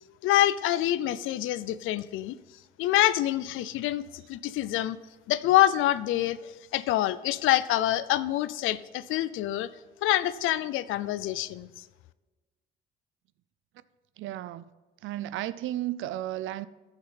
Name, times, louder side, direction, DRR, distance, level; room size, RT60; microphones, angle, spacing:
voice 1, 0.2-2.4 2.8-5.0 5.3-9.7 10.0-11.7, left 14 dB, 85° left, 0.4 m, -26 dB
voice 2, 14.2-14.7 15.0-16.7, right 14 dB, 80° right, 0.4 m, -33 dB
14.5 x 5.4 x 4.1 m
cardioid pair, 90°, 20 cm